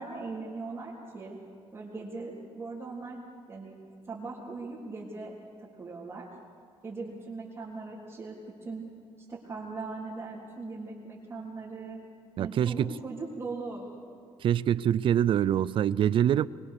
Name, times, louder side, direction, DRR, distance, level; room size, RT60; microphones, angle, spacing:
voice 1, 0.0-1.4 1.7-3.2 3.5-3.8 4.1-5.3 5.6-6.3 6.8-8.9 9.2-12.0 12.4-13.8, right 3 dB, 25° right, 3.6 m, -39 dB
voice 2, 12.4-12.9 14.4-16.5, right 10 dB, 55° right, 0.5 m, -25 dB
24.0 x 22.5 x 6.8 m
cardioid pair, 155°, 10 cm